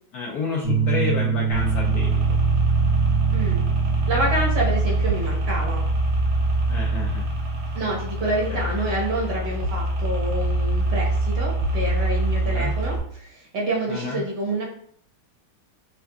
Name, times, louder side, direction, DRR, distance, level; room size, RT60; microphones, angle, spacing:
voice 1, 0.1-2.1 6.7-7.2 8.5-8.7 12.4-12.7 13.9-14.2, left 4 dB, 80° left, -1 dB, 0.8 m, -30 dB
sound 1, 0.6-11.8, right 7 dB, 55° left, 0.8 m, -27 dB
sound 2, 1.5-13.0, right 1 dB, 85° right, 1.7 m, -24 dB
voice 2, 3.3-3.6 4.1-5.8 7.7-14.7, right 1 dB, 60° right, -4 dB, 1.7 m, -28 dB
6.1 x 2.3 x 2.3 m, 0.62 s
omnidirectional pair, 2.1 m